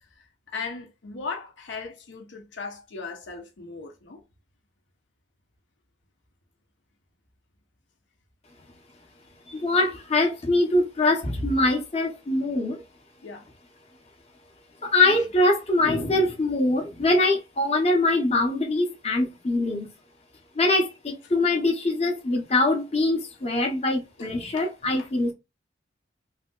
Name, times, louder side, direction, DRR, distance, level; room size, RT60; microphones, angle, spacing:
voice 1, 0.0-4.2 13.2-13.5 15.0-15.2 24.2-24.7 25.0-25.1, left 4 dB, 75° left, 0.8 m, -38 dB
voice 2, 9.5-12.8 14.8-19.9 20.5-25.3, left 2 dB, 35° left, 0.8 m, -23 dB
3.3 x 2.7 x 2.3 m
head